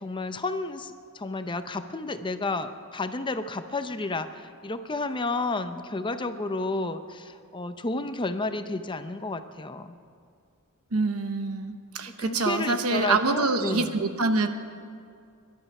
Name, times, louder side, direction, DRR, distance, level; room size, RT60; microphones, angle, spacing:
voice 1, 0.0-9.9 12.2-14.1, left 2 dB, 20° left, 9 dB, 0.6 m, -31 dB
voice 2, 10.9-14.5, right 3 dB, 75° right, 8 dB, 1.0 m, -26 dB
22.0 x 11.5 x 5.4 m, 2.3 s
head